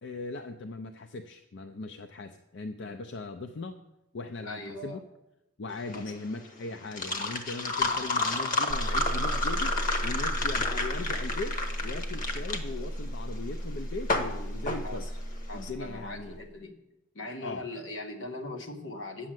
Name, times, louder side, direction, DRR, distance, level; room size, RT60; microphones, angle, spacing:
voice 1, 0.0-3.8 4.1-5.0 5.6-15.1 15.5-16.4 17.4-17.7, left 3 dB, 65° left, 7 dB, 0.5 m, -39 dB
voice 2, 4.4-5.0 5.9-6.1 14.8-15.1 15.5-16.8 17.1-19.3, left 2 dB, 90° left, 2 dB, 1.4 m, -40 dB
sound 1, 5.7-15.6, left 2 dB, 45° left, 1.1 m, -31 dB
sound 2, 8.7-16.5, equal, 5° right, 0.4 m, -35 dB
8.4 x 6.4 x 7.6 m, 0.90 s
head